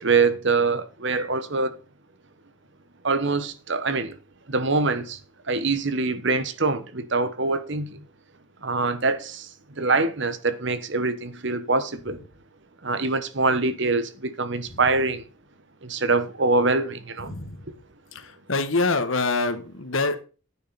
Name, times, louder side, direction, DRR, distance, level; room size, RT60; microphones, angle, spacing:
voice 1, 0.0-1.8 3.0-4.1 4.5-5.2 5.5-8.0 8.6-9.5 9.8-12.2 12.8-15.2 15.8-17.4, right 3 dB, 55° right, 1.1 m, -24 dB
voice 2, 18.5-20.2, left 3 dB, 70° left, 1.4 m, -24 dB
10.5 x 9.4 x 4.1 m
head